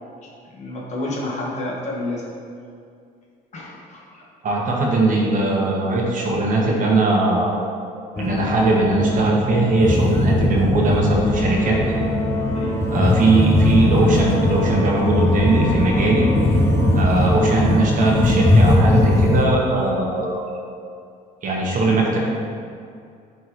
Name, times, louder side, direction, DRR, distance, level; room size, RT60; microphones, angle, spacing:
voice 1, 0.4-2.3 3.5-4.2 12.5-12.7, left 2 dB, 45° left, -4 dB, 1.5 m, -30 dB
voice 2, 4.4-7.7 8.2-11.8 12.9-16.3 16.9-20.4 21.4-22.2, right 2 dB, 50° right, -2 dB, 1.3 m, -20 dB
sound 1, 8.2-19.5, left 1 dB, 15° left, 0.7 m, -19 dB
9.7 x 3.6 x 3.2 m, 2.3 s
cardioid pair, 110°, 17 cm